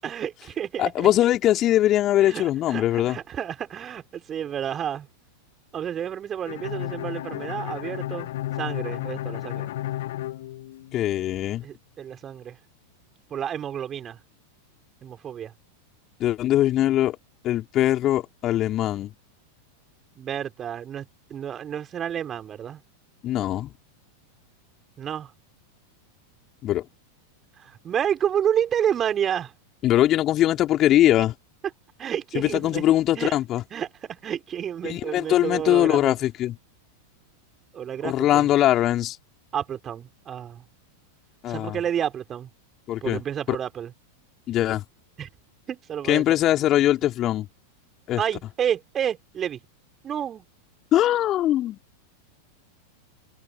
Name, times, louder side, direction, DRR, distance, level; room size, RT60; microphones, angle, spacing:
voice 1, 0.0-1.1 2.2-5.1 5.7-8.3 8.6-9.7 11.6-12.6 13.3-14.2 15.0-15.5 20.2-22.8 25.0-25.3 27.6-29.5 32.0-32.8 33.2-33.4 33.7-36.1 37.7-38.5 39.5-40.6 41.5-42.5 43.0-43.9 45.2-45.3 45.7-46.4 48.2-49.6 50.0-50.5, right 9 dB, 25° right, 5.7 m, -30 dB
voice 2, 0.8-3.2 10.9-11.6 16.2-17.2 17.4-19.1 23.2-23.7 26.6-26.9 29.8-31.3 32.3-33.6 34.8-36.6 38.0-39.2 41.4-41.8 42.9-43.2 43.5-43.6 44.5-44.8 46.1-47.5 48.1-48.2 50.9-51.8, left 13 dB, 30° left, 3.8 m, -21 dB
Bowed string instrument, 6.4-11.3, left 14 dB, 55° left, 1.4 m, -33 dB
figure-of-eight pair, 90°, 0 cm